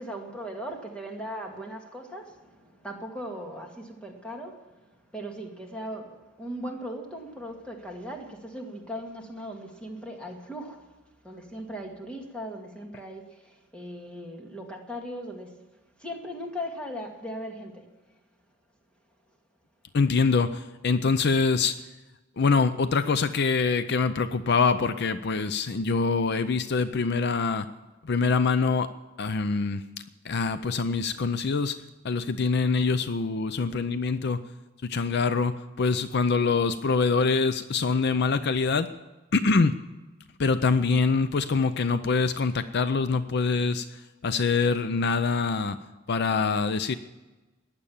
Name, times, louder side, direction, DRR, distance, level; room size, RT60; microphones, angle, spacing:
voice 1, 0.0-4.7 5.1-10.9 11.2-15.6 16.0-17.9, equal, 5° left, 1 dB, 2.1 m, -38 dB
voice 2, 19.9-21.8 22.4-27.7 28.0-28.9 29.2-29.8 30.2-31.8 32.0-34.4 34.8-38.9 39.3-39.8 40.4-45.8 46.1-46.9, left 4 dB, 55° left, 12 dB, 0.5 m, -24 dB
15.0 x 10.5 x 7.2 m, 1.1 s
head